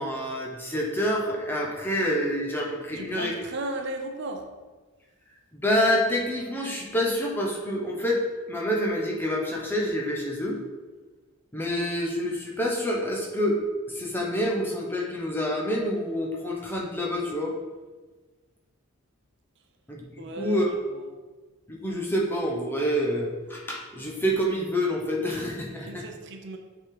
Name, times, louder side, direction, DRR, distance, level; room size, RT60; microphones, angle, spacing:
voice 1, 0.0-3.3 5.5-8.2 8.5-10.6 11.5-17.5 19.9-20.7 21.7-26.0, equal, 10° left, -2 dB, 0.9 m, -27 dB
voice 2, 3.0-4.5 20.2-21.1 25.8-26.6, right 2 dB, 55° right, 5 dB, 0.7 m, -35 dB
7.1 x 3.8 x 4.9 m, 1.3 s
head